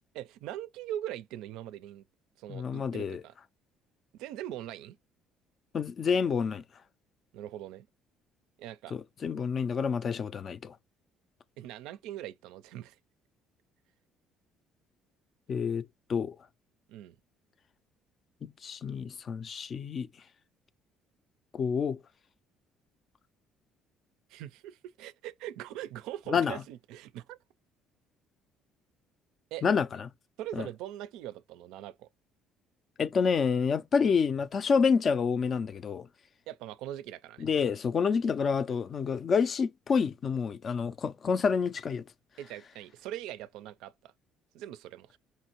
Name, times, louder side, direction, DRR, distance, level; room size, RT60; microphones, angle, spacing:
voice 1, 0.1-2.0 2.4-3.3 4.1-5.0 7.3-7.9 8.6-8.9 11.6-13.0 16.9-17.2 24.3-27.4 29.5-29.6 30.4-32.1 36.5-37.5 42.4-44.1 44.5-45.2, right 12 dB, 85° right, 0.4 m, -41 dB
voice 2, 2.5-3.2 5.7-6.6 8.9-10.8 15.5-16.4 18.4-20.1 21.5-22.0 26.3-26.6 29.6-30.1 30.6-30.7 33.0-36.1 37.4-42.0, left 6 dB, 40° left, 0.3 m, -28 dB
5.6 x 2.6 x 2.9 m
cardioid pair, 125°, 0 cm